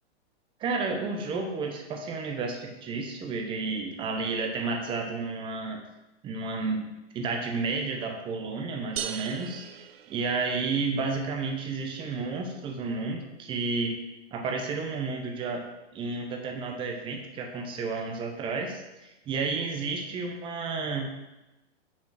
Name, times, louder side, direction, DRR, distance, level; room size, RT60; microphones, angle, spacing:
voice 1, 0.6-5.8 6.2-9.7 10.1-14.0 14.3-15.6 15.9-21.1, right 4 dB, 15° right, 3 dB, 0.7 m, -31 dB
sound 1, 9.0-10.8, right 9 dB, 60° right, 0.6 m, -38 dB
6.2 x 4.1 x 5.6 m, 0.98 s
hypercardioid pair, 150°, 34 cm